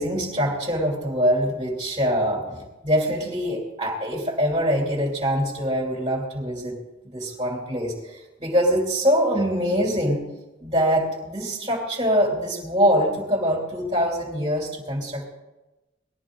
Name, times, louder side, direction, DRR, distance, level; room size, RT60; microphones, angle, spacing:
voice 1, 0.0-6.8 7.1-10.2 10.6-15.3, equal, 25° right, -2 dB, 2.9 m, -24 dB
20.0 x 13.5 x 3.8 m, 1.0 s
head